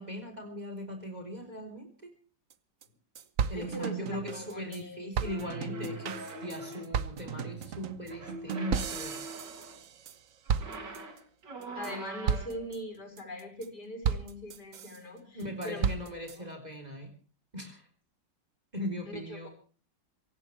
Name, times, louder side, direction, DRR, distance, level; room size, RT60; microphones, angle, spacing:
voice 1, 0.0-2.1 3.5-9.2 15.3-17.1 17.5-17.8 18.7-19.5, equal, 20° right, 5 dB, 3.8 m, -39 dB
sound 1, 2.5-2.6 2.8-2.9 3.1-4.8 5.1-10.2 10.5-11.2 11.6-11.9 12.3-12.8 13.2-13.7 14.0-15.0 15.4-16.4, right 7 dB, 55° right, 1.2 m, -34 dB
voice 2, 3.5-5.2 11.7-16.5 19.1-19.5, left 1 dB, 60° left, 4 dB, 6.3 m, -42 dB
sound 2, 5.2-7.1 8.0-9.8 10.5-12.7, right 1 dB, 70° right, 3.3 m, -43 dB
24.0 x 17.5 x 3.3 m, 0.40 s
omnidirectional pair, 2.0 m